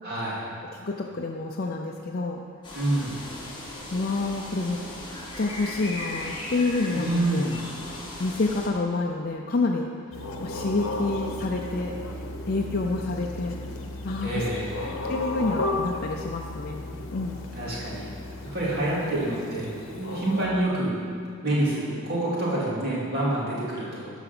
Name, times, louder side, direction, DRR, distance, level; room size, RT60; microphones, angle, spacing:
voice 1, 0.0-0.5 2.7-3.2 6.9-7.6 14.2-15.0 17.5-18.1 18.5-21.1 21.4-24.1, right 1 dB, 45° right, -7 dB, 2.8 m, -27 dB
voice 2, 0.7-2.4 3.9-4.8 5.4-7.1 7.3-7.5 8.2-9.9 10.4-11.9 12.5-13.6 14.0-14.4 15.1-16.9 17.1-17.4, left 3 dB, 45° left, 0 dB, 0.5 m, -28 dB
sound 1, 2.6-8.7, left 1 dB, 20° left, 1.5 m, -37 dB
sound 2, 10.1-20.5, left 2 dB, 60° left, 1.0 m, -34 dB
12.5 x 4.9 x 6.0 m, 2.4 s
head